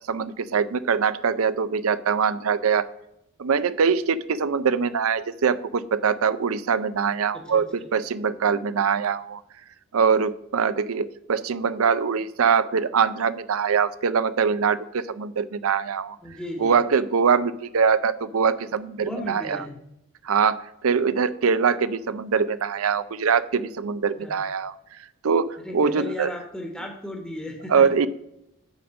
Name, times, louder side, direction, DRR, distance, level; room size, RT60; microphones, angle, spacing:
voice 1, 0.1-2.9 3.4-9.4 9.9-16.2 16.6-19.6 20.2-24.7 25.2-26.3 27.7-28.1, right 6 dB, 75° right, 15 dB, 0.5 m, -23 dB
voice 2, 7.3-7.9 16.2-16.8 19.0-19.8 24.2-24.4 25.6-28.0, left 1 dB, 5° left, 1 dB, 1.2 m, -36 dB
9.7 x 3.6 x 7.0 m, 0.83 s
head